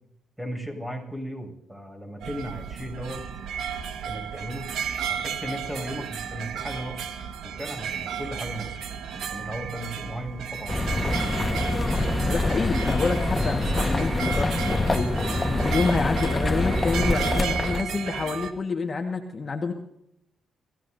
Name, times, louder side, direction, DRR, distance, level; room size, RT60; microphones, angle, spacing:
voice 1, 0.4-3.2 4.1-7.1 7.4-8.8 9.1-11.2, equal, 10° right, 3 dB, 7.4 m, -36 dB
sound 1, 2.2-18.5, right 7 dB, 80° right, 1.6 m, -33 dB
sound 2, 10.7-17.8, left 2 dB, 25° left, 1.5 m, -25 dB
voice 2, 12.2-19.7, left 4 dB, 40° left, 3 dB, 1.7 m, -28 dB
30.0 x 16.0 x 2.8 m, 0.78 s
cardioid pair, 65°, 0 cm